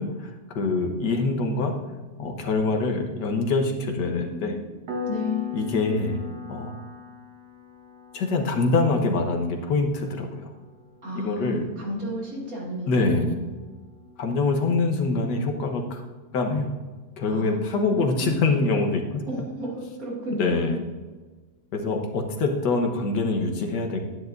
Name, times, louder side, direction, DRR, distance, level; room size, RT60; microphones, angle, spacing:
voice 1, 0.0-1.7 2.2-4.6 5.5-6.2 6.5-6.7 8.1-10.5 11.2-11.7 12.9-13.4 14.2-16.0 16.3-16.8 17.2-19.2 20.4-20.8 21.7-24.0, left 3 dB, 85° left, 4 dB, 1.7 m, -24 dB
Piano, 4.9-15.3, left 6 dB, 90° right, 1.7 m, -40 dB
voice 2, 5.0-5.7 11.0-13.5 17.3-18.4 19.3-20.8, left 1 dB, 55° right, -5 dB, 2.9 m, -33 dB
10.0 x 9.9 x 2.6 m, 1.3 s
omnidirectional pair, 1.8 m